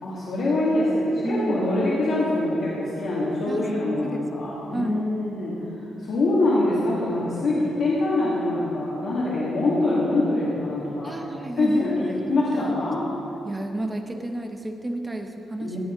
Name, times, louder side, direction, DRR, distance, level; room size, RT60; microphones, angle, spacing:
voice 1, 0.0-5.5 6.0-11.1 11.6-12.0 12.3-13.0 15.6-15.8, left 2 dB, 65° left, -9 dB, 2.3 m, -24 dB
voice 2, 1.2-1.7 3.5-3.7 4.0-4.2 4.7-5.0 11.0-12.2 12.5-12.9 13.4-15.8, right 1 dB, 15° right, 5 dB, 0.9 m, -31 dB
16.5 x 7.8 x 4.0 m, 2.8 s
cardioid pair, 110°, 0 cm